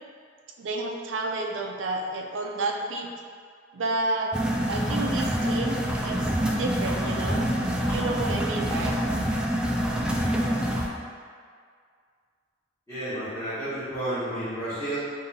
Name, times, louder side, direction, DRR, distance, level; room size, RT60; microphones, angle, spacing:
voice 1, 0.6-3.1 3.7-4.4 4.7-6.2 6.5-7.4 7.9-9.0, right 2 dB, 85° right, 1 dB, 0.5 m, -30 dB
sound 1, 4.3-10.9, equal, 5° right, 0.3 m, -26 dB
voice 2, 12.9-15.0, right 1 dB, 15° left, -16 dB, 1.4 m, -31 dB
5.2 x 2.7 x 2.8 m, 2.1 s
head